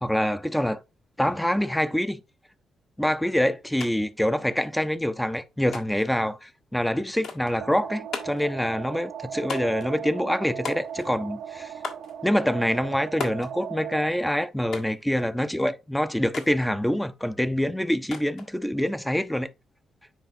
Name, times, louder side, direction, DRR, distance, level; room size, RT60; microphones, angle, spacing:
voice 1, 0.0-0.8 1.2-2.2 3.0-11.7 12.2-19.5, equal, 5° left, 0.5 m, -25 dB
sound 1, 3.8-3.9 4.2-4.9 5.7-6.1 7.2-7.6 8.1-8.5 9.5-9.9 10.6-11.2 11.8-12.1 13.2-13.5 14.7-15.0 16.3-16.6 18.1-18.5, left 4 dB, 70° left, 1.5 m, -36 dB
sound 2, 7.6-14.1, right 9 dB, 80° right, 0.8 m, -37 dB
7.4 x 4.8 x 2.7 m
cardioid pair, 90°, 0 cm